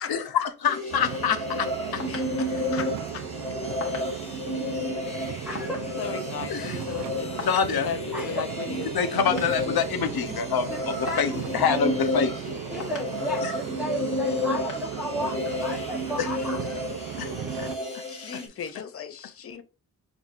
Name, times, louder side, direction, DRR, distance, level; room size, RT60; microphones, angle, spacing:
voice 1, 0.1-1.7 1.9-2.0 6.5-6.8 7.4-7.9 8.9-12.4 13.4-13.5 16.2-16.3 17.2-17.3 17.6-17.7 18.3-18.4, left 7 dB, 75° left, 0.7 m, -26 dB
sound 1, 0.7-18.5, left 1 dB, 15° left, 1.0 m, -32 dB
sound 2, 0.9-17.8, right 9 dB, 70° right, 0.5 m, -36 dB
sound 3, 1.4-17.9, left 5 dB, 55° left, 1.2 m, -47 dB
voice 2, 2.1-3.3 6.0-7.5 7.8-8.9 18.1-19.6, left 7 dB, 40° left, 0.5 m, -36 dB
voice 3, 5.0-5.8 7.5-7.6 8.1-8.5 10.7-10.8 11.0-11.8 12.7-16.8, equal, 5° right, 0.7 m, -34 dB
5.8 x 2.7 x 2.4 m
wide cardioid pair, 120°, 37 cm